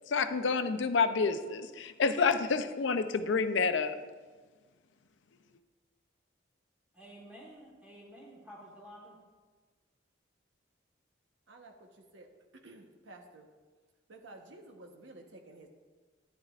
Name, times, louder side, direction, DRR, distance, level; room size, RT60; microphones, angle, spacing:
voice 1, 0.1-4.0, left 4 dB, 75° left, 10 dB, 0.5 m, -28 dB
voice 2, 6.9-9.2, equal, 10° right, -6 dB, 1.3 m, -51 dB
voice 3, 11.5-12.3 12.6-13.5 14.1-15.7, right 2 dB, 80° right, 3 dB, 1.1 m, -52 dB
13.0 x 10.0 x 2.4 m, 1.4 s
head